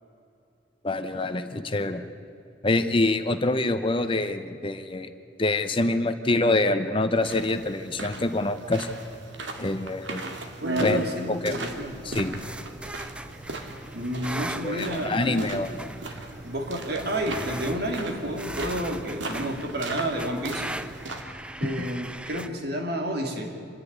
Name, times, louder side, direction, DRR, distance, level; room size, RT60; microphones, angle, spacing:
voice 1, 0.8-2.0 2.6-5.1 5.4-8.9 9.6-10.3 10.8-11.5 12.0-12.4 14.6-15.7, left 2 dB, 30° left, 9 dB, 0.8 m, -25 dB
sound 1, 7.2-21.2, right 2 dB, 85° right, 2.2 m, -37 dB
voice 2, 10.6-12.0 13.9-15.6 16.4-20.7 21.6-23.6, right 1 dB, 60° right, 3 dB, 2.6 m, -30 dB
sound 2, 11.7-22.5, right 1 dB, 5° right, 0.6 m, -39 dB
27.0 x 10.5 x 9.6 m, 2.7 s
head